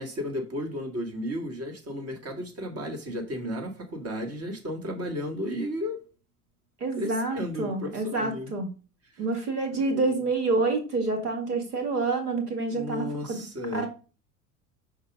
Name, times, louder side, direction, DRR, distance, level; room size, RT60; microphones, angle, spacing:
voice 1, 0.0-6.0 7.0-8.5 9.1-9.2 9.7-10.1 12.7-13.9, equal, 30° right, 1.9 m, -34 dB
voice 2, 6.8-8.7 9.2-13.4 13.7-13.9, right 3 dB, 85° right, 1.8 m, -28 dB
5.3 x 3.8 x 4.9 m
hypercardioid pair, 75°, 45 cm